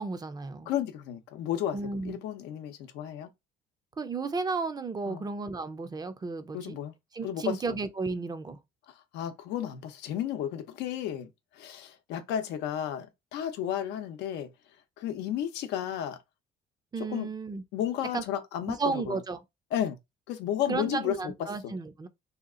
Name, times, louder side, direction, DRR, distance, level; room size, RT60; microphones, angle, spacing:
voice 1, 0.0-0.7 1.7-2.2 4.0-6.8 7.1-8.6 16.9-17.6 18.1-18.2 18.7-19.4 20.7-22.1, right 4 dB, 25° right, 0.5 m, -33 dB
voice 2, 0.7-3.3 5.1-5.2 6.5-6.9 7.2-7.8 8.9-14.5 15.0-16.2 17.1-17.3 17.7-19.2 19.7-20.0 20.3-21.3 21.6-21.7, left 10 dB, 90° left, 0.6 m, -33 dB
2.8 x 2.4 x 3.7 m
cardioid pair, 110°, 17 cm